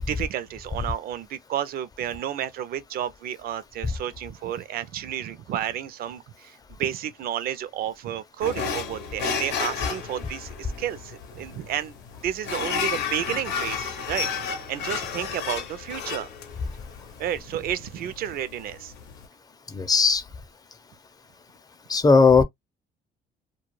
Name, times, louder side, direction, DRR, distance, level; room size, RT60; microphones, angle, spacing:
voice 1, 0.1-12.0 12.2-14.3 14.7-16.3 17.2-18.9, right 10 dB, 60° right, 0.5 m, -31 dB
sound 1, 8.4-19.2, left 6 dB, 85° left, 0.7 m, -32 dB
voice 2, 19.7-20.2 21.9-22.4, left 4 dB, 20° left, 0.5 m, -17 dB
2.3 x 2.2 x 3.0 m
cardioid pair, 110°, 17 cm